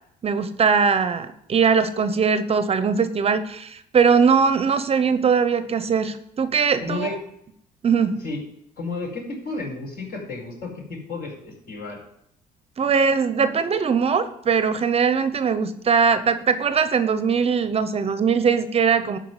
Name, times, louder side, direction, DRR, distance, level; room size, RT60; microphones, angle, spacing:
voice 1, 0.2-7.1 7.8-8.2 12.8-19.2, right 6 dB, 35° right, 12 dB, 0.8 m, -21 dB
voice 2, 6.8-7.2 8.2-8.4 8.8-12.0, left 3 dB, 60° left, -2 dB, 5.0 m, -32 dB
12.0 x 4.6 x 8.1 m, 0.73 s
cardioid pair, 110°, 17 cm